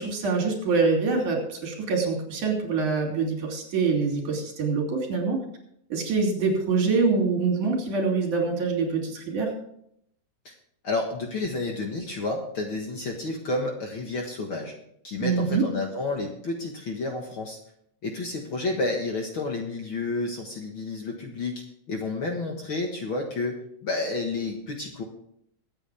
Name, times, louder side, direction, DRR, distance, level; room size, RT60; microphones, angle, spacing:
voice 1, 0.0-5.4 5.9-9.5 15.2-15.6, right 4 dB, 70° right, 1 dB, 4.5 m, -25 dB
voice 2, 10.8-14.7 15.0-17.6 18.0-25.0, left 2 dB, 45° left, 2 dB, 1.9 m, -30 dB
23.0 x 8.7 x 3.5 m, 0.71 s
omnidirectional pair, 3.7 m